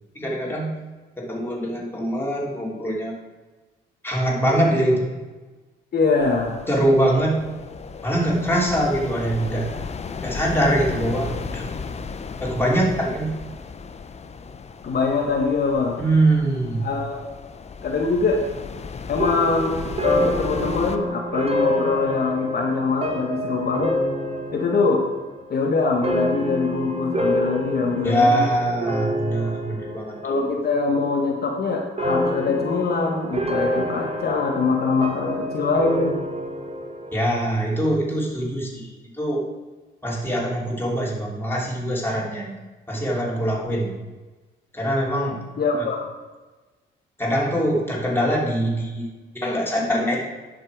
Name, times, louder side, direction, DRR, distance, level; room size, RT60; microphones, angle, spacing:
voice 1, 0.1-0.7 1.2-3.2 4.0-5.1 6.7-7.4 8.0-9.7 10.2-11.7 12.4-13.4 16.0-16.8 28.0-30.4 37.1-39.4 40.0-42.6 42.9-43.9 44.7-45.4 47.2-50.2, right 1 dB, 10° left, -3 dB, 3.0 m, -23 dB
voice 2, 5.9-6.6 14.8-16.0 16.8-17.2 17.8-18.4 19.1-23.9 24.5-25.1 25.5-28.5 30.2-36.2 45.6-46.0, left 4 dB, 50° left, 0 dB, 1.4 m, -23 dB
sound 1, 6.2-21.0, left 5 dB, 35° left, 0.7 m, -35 dB
sound 2, 19.2-30.7 30.9-31.5 32.0-37.3, equal, 30° right, 1.2 m, -28 dB
10.5 x 5.9 x 4.8 m, 1.2 s
cardioid pair, 90°, 20 cm